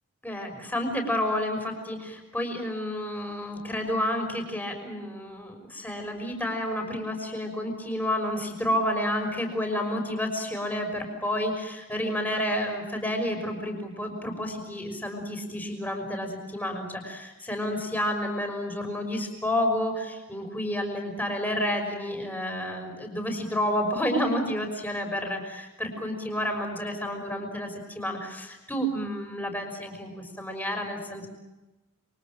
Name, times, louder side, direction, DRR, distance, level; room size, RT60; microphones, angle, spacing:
voice 1, 0.2-31.3, left 1 dB, 10° left, 4 dB, 5.9 m, -30 dB
29.0 x 24.0 x 7.6 m, 1.0 s
head